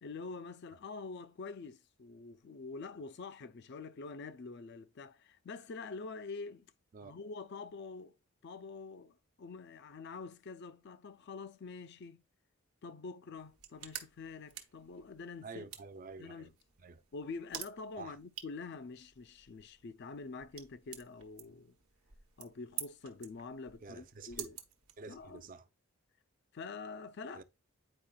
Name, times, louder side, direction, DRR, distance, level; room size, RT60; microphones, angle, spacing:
voice 1, 0.0-6.7 7.0-8.1 8.4-12.2 12.8-15.7 16.2-16.5 17.1-21.8 22.4-24.6 25.1-25.4 26.5-27.4, left 4 dB, 50° left, 0.4 m, -46 dB
sound 1, 13.4-25.5, right 10 dB, 90° right, 1.0 m, -50 dB
voice 2, 15.4-16.5 16.8-17.0 18.0-18.2 23.8-24.5 25.0-25.7 27.3-27.4, right 4 dB, 40° right, 0.4 m, -48 dB
8.8 x 4.7 x 2.3 m
head